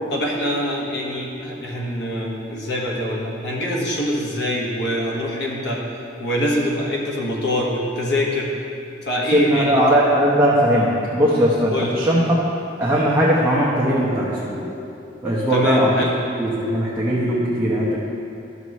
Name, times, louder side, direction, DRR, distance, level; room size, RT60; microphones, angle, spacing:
voice 1, 0.1-5.8 6.2-8.5 9.0-10.0 11.7-12.0 15.5-16.1, left 1 dB, 65° left, -2 dB, 1.4 m, -24 dB
voice 2, 9.3-12.4 12.8-14.7 15.2-16.1 16.4-18.0, equal, 15° right, -7 dB, 0.9 m, -19 dB
12.5 x 6.7 x 3.1 m, 2.6 s
head